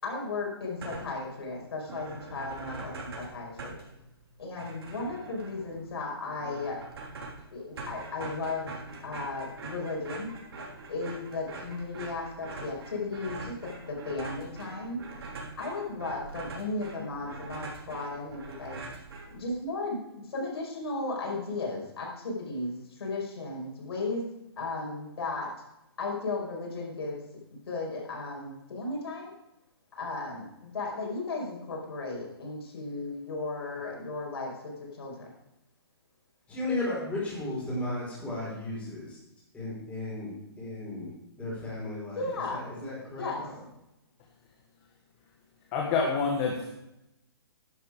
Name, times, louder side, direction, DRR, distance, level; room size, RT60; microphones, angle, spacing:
voice 1, 0.0-3.8 4.4-6.8 7.5-10.3 10.6-15.0 15.6-18.8 19.3-24.2 24.6-25.5 26.0-27.2 27.7-29.3 29.9-35.3 42.2-42.9 43.2-43.4, left 3 dB, 70° left, -1 dB, 5.2 m, -35 dB
sound 1, 0.6-1.3 1.6-1.7 1.9-19.7, right 3 dB, 65° right, 3.5 m, -43 dB
voice 2, 36.5-39.2 39.5-40.3 40.6-41.1 41.4-43.6, left 2 dB, 10° left, -6 dB, 5.2 m, -35 dB
voice 3, 45.7-46.7, left 4 dB, 30° left, 0 dB, 1.7 m, -27 dB
11.0 x 10.5 x 4.9 m, 0.87 s
hypercardioid pair, 150°, 14 cm